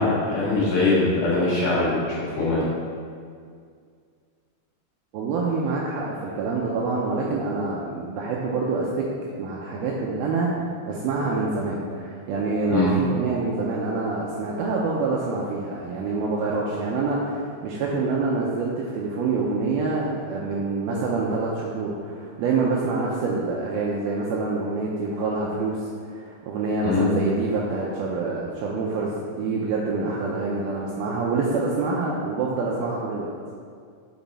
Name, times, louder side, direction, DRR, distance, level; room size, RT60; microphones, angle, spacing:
voice 1, 0.0-2.7 12.7-12.9 26.8-27.1, left 3 dB, 55° left, -8 dB, 2.9 m, -22 dB
voice 2, 5.1-9.1 9.4-33.3, right 3 dB, 80° right, -3 dB, 2.3 m, -26 dB
7.2 x 6.1 x 4.2 m, 2.1 s
omnidirectional pair, 4.9 m